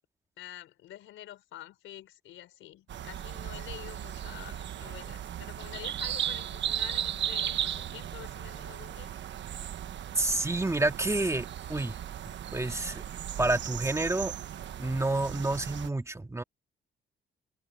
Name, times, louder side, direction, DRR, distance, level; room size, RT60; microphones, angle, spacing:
voice 1, 0.4-9.1, left 13 dB, 85° left, 4.9 m, -47 dB
sound 1, 2.9-15.9, right 10 dB, 65° right, 1.3 m, -36 dB
voice 2, 10.2-12.0 12.5-13.0 13.4-14.3 14.8-16.4, right 2 dB, 15° right, 2.2 m, -29 dB
cardioid pair, 90°, 20 cm